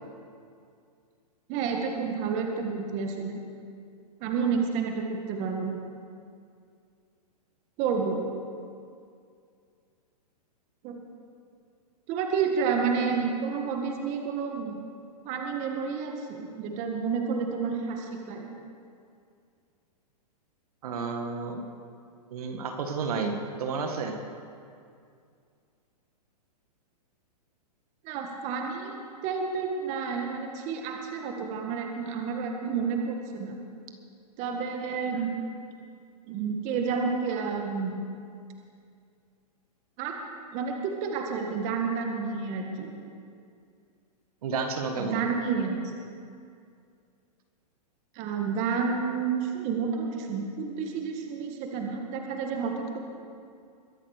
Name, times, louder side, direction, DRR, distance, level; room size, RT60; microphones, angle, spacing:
voice 1, 1.5-3.4 4.2-5.8 7.8-8.2 10.8-11.0 12.1-14.8 15.2-18.5 28.0-33.6 34.4-35.4 36.2-38.0 40.0-40.2 40.5-42.9 45.0-45.9 48.1-53.0, right 5 dB, 35° right, 2 dB, 1.8 m, -30 dB
voice 2, 20.8-21.6 22.3-23.3 23.6-24.2 44.4-45.2, right 4 dB, 65° right, 4 dB, 1.8 m, -31 dB
22.5 x 7.7 x 6.6 m, 2.3 s
hypercardioid pair, 140°, 21 cm